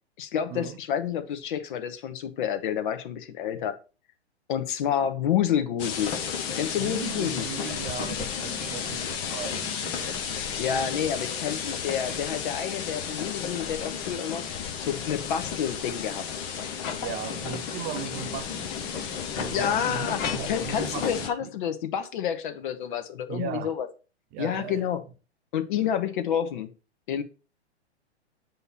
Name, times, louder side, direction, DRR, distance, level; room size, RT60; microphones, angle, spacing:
voice 1, 0.2-3.8 4.5-6.1 6.6-7.5 10.6-14.4 14.8-16.2 19.5-23.9 24.4-25.0 25.5-26.7 27.1-27.2, left 9 dB, 45° left, 1.0 m, -29 dB
sound 1, 5.8-21.3, left 7 dB, 15° left, 0.4 m, -33 dB
voice 2, 6.8-10.2 10.7-10.8 17.0-21.5 23.3-23.7 24.3-24.9, right 9 dB, 25° right, 0.7 m, -38 dB
8.0 x 2.9 x 5.6 m
figure-of-eight pair, 115°, 34 cm